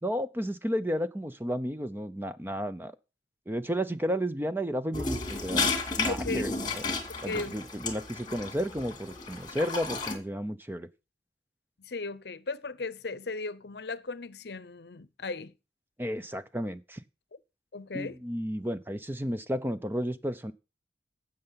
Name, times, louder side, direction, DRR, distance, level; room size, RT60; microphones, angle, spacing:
voice 1, 0.0-2.9 3.5-5.7 6.0-6.8 7.2-10.9 16.0-17.0 17.9-20.5, equal, 10° right, 0.6 m, -32 dB
sound 1, 4.9-10.1, left 4 dB, 25° left, 2.3 m, -32 dB
voice 2, 6.1-6.4 7.3-7.6 11.8-15.5 17.7-18.2, left 3 dB, 65° left, 0.7 m, -36 dB
12.5 x 7.8 x 5.7 m
head